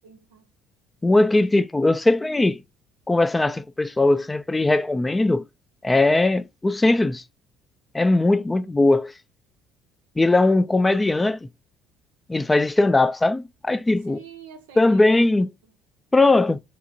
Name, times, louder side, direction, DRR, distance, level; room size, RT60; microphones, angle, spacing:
voice 1, 0.0-0.5 8.3-8.9 14.1-15.2, right 6 dB, 90° right, 0.6 m, -47 dB
voice 2, 1.0-2.6 3.1-5.4 5.8-7.2 7.9-9.1 10.2-11.5 12.3-14.2 14.8-15.5 16.1-16.6, left 2 dB, 15° left, 0.3 m, -19 dB
2.9 x 2.5 x 2.6 m
hypercardioid pair, 65°, 0 cm